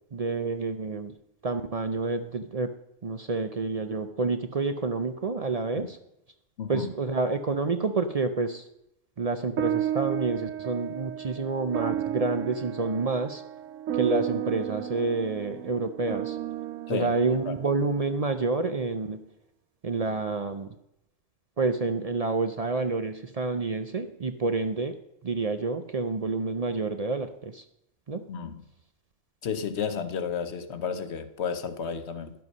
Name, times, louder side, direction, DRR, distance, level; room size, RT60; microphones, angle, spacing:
voice 1, 0.1-1.1 1.4-2.7 3.0-6.0 6.7-8.7 9.2-13.4 13.9-16.4 16.9-19.2 19.8-20.7 21.6-25.0 25.2-27.6 28.1-28.3, right 3 dB, 50° right, 8 dB, 0.4 m, -28 dB
voice 2, 6.6-6.9 16.9-17.1 17.5-17.6 28.3-28.6 29.4-32.3, left 6 dB, 60° left, 10 dB, 1.0 m, -32 dB
sound 1, 9.6-18.2, right 11 dB, 80° right, 1.0 m, -33 dB
11.0 x 7.7 x 5.4 m, 0.82 s
omnidirectional pair, 1.3 m